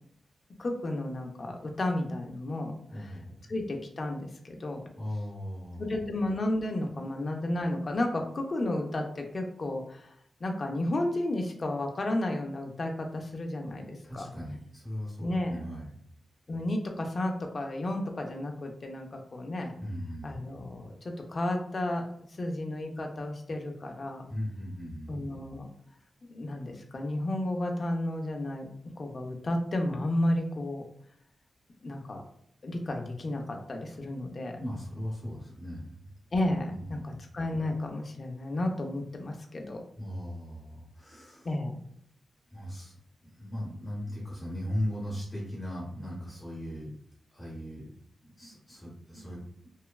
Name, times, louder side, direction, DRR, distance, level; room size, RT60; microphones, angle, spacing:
voice 1, 0.6-2.7 3.5-4.8 5.8-10.1 10.4-14.3 15.2-15.6 16.5-19.7 20.2-22.0 22.4-24.3 25.1-25.7 26.3-28.7 29.0-30.8 31.8-32.2 32.6-34.6 36.3-39.8 41.4-41.8, left 1 dB, 35° left, 3 dB, 0.4 m, -32 dB
voice 2, 2.9-3.4 5.0-6.0 13.6-13.7 14.0-16.0 19.8-20.4 24.3-25.3 34.6-36.1 36.7-37.3 40.0-41.5 42.5-46.9 47.3-47.9 48.2-49.7, equal, 15° left, -6 dB, 0.8 m, -38 dB
3.0 x 2.1 x 2.3 m, 0.69 s
wide cardioid pair, 175°, 0 cm